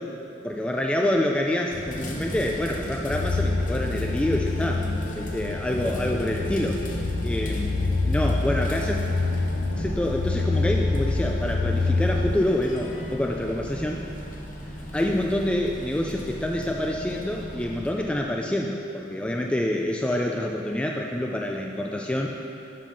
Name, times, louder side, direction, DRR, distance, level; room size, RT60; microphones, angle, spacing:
voice 1, 0.4-4.9 5.2-9.0 9.8-14.0 14.9-22.3, left 1 dB, 5° left, 0 dB, 0.3 m, -27 dB
sound 1, 1.7-17.9, equal, 45° left, 1.0 m, -36 dB
sound 2, 3.1-12.4, left 3 dB, 75° left, 0.6 m, -26 dB
7.6 x 5.3 x 5.4 m, 2.9 s
head